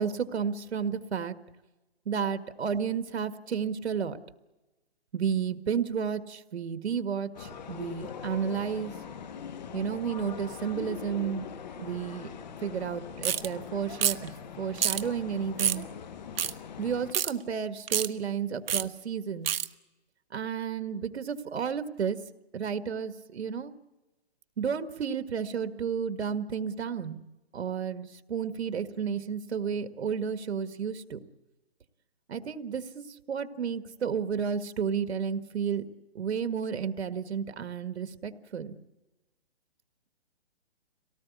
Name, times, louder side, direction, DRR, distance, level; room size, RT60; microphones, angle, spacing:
voice 1, 0.0-1.3 2.0-4.2 5.1-8.9 9.7-11.5 11.8-12.3 12.6-14.3 14.6-15.9 16.8-19.5 20.3-22.2 22.5-23.7 24.6-27.2 27.5-31.2 32.3-35.8 36.1-38.7, right 7 dB, 80° right, 11 dB, 1.7 m, -32 dB
sound 1, 7.3-17.1, left 7 dB, 45° left, 1.1 m, -42 dB
sound 2, 13.2-13.5 14.0-14.3 14.8-15.0 15.6-15.8 16.4-16.5 17.1-17.3 17.9-18.1 18.7-18.8 19.5-19.7, right 9 dB, 60° right, 1.0 m, -27 dB
24.5 x 18.0 x 8.3 m, 1.1 s
hypercardioid pair, 170°, 32 cm